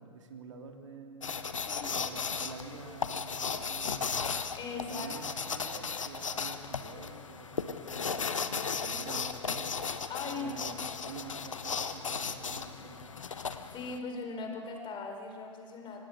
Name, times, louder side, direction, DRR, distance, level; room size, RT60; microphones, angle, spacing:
voice 1, 0.0-1.4 1.9-4.2 4.7-9.8 10.3-13.2, right 4 dB, 70° right, 4 dB, 2.6 m, -47 dB
sound 1, 1.2-14.0, left 5 dB, 75° left, 1.3 m, -36 dB
voice 2, 4.6-5.1 10.1-10.5 13.3-13.5 13.7-16.0, left 4 dB, 30° left, 4 dB, 4.8 m, -39 dB
25.5 x 20.0 x 8.1 m, 2.2 s
figure-of-eight pair, 95°, 16 cm